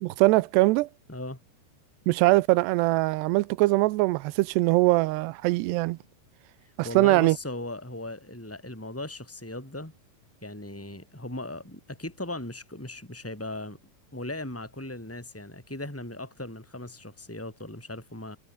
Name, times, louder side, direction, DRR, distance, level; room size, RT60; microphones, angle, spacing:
voice 1, 0.0-0.9 2.1-6.0 6.8-7.4, right 21 dB, 85° right, 2.8 m, -22 dB
voice 2, 1.1-1.4 6.8-9.9 10.4-13.8 14.1-18.4, left 1 dB, 5° left, 6.9 m, -38 dB
omnidirectional pair, 4.8 m